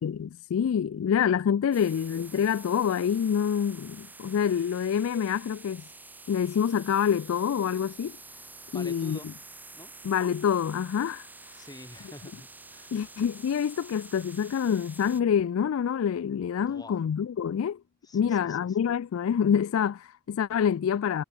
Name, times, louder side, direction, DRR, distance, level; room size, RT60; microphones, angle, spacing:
voice 1, 0.0-5.8 6.3-8.1 8.7-9.2 10.0-11.3 12.9-17.8 18.1-21.2, left 8 dB, 75° left, 0.3 m, -26 dB
sound 1, 1.7-15.2, right 3 dB, 10° right, 3.3 m, -48 dB
voice 2, 8.7-9.3 9.7-9.9 11.5-13.0 16.6-17.0 18.0-18.9, left 1 dB, 15° left, 3.4 m, -47 dB
head